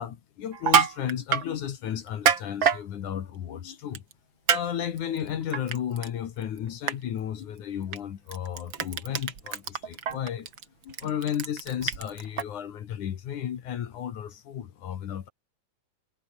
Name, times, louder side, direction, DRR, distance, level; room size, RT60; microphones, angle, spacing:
voice 1, 0.0-4.0 4.5-10.5 10.8-15.3, left 9 dB, 55° left, 2.7 m, -33 dB
Crushing, 0.5-1.5 2.1-2.8 3.9-4.1 4.5-4.6 5.0-6.1 6.4-6.6 6.9-7.0 7.9-8.0 8.3-12.4, right 7 dB, 50° right, 1.4 m, -25 dB
omnidirectional pair, 4.8 m